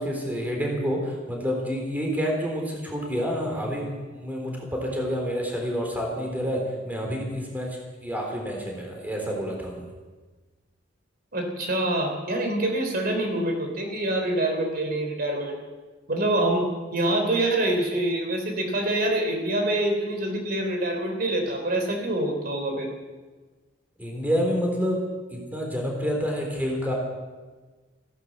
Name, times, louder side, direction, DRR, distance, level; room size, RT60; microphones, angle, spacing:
voice 1, 0.0-9.9 24.0-25.0 25.3-26.9, equal, 10° right, 0 dB, 3.7 m, -28 dB
voice 2, 11.3-15.6 16.1-22.9, right 1 dB, 55° right, 3 dB, 3.5 m, -26 dB
16.0 x 11.5 x 7.5 m, 1.3 s
head